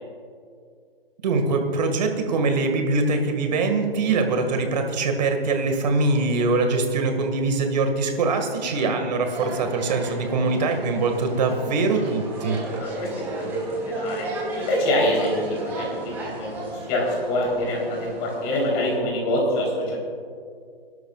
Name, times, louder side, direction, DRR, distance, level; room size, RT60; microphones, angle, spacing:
voice 1, 1.2-12.6, right 3 dB, 45° right, 5 dB, 1.9 m, -23 dB
voice 2, 8.5-8.9 12.8-13.1 13.4-14.3 14.5-15.9 16.2-20.0, left 1 dB, 25° left, -2 dB, 3.6 m, -25 dB
sound 1, 9.2-18.9, right 2 dB, 5° right, 4.2 m, -34 dB
27.0 x 12.0 x 2.4 m, 2.2 s
hypercardioid pair, 155°, 29 cm